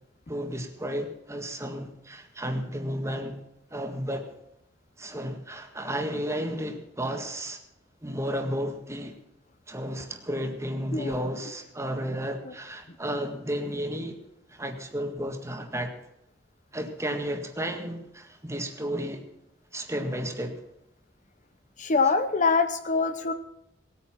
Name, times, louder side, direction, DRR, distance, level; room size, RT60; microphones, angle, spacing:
voice 1, 0.3-3.4 3.7-4.3 5.0-7.6 8.0-9.2 9.7-14.2 14.5-15.9 16.7-19.2 19.7-20.6, equal, 15° right, 5 dB, 1.7 m, -32 dB
voice 2, 21.8-23.3, left 4 dB, 40° left, 10 dB, 0.8 m, -24 dB
19.0 x 9.2 x 5.9 m, 0.82 s
head